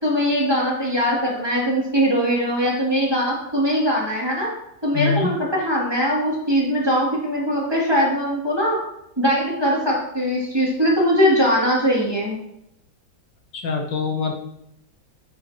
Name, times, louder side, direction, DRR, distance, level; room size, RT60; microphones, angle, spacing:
voice 1, 0.0-4.5 4.8-8.8 9.2-12.4, equal, 15° right, -5 dB, 2.7 m, -21 dB
voice 2, 4.9-5.3 13.5-14.3, left 5 dB, 75° left, 3 dB, 1.7 m, -23 dB
9.0 x 8.4 x 3.0 m, 0.81 s
omnidirectional pair, 2.0 m